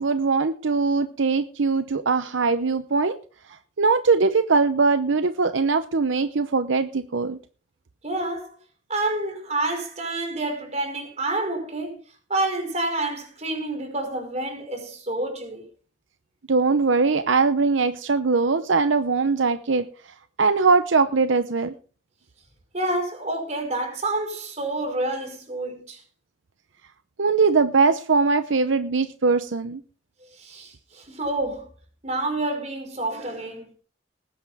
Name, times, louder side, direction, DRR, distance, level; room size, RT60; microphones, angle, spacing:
voice 1, 0.0-3.2 3.8-7.4 16.5-19.9 20.4-21.7 27.2-29.8, right 4 dB, 75° right, 0.7 m, -21 dB
voice 2, 8.0-8.5 8.9-12.0 12.3-15.6 22.7-26.0 30.4-31.7 32.0-33.7, right 2 dB, 35° right, 4.9 m, -28 dB
19.5 x 10.5 x 3.5 m
head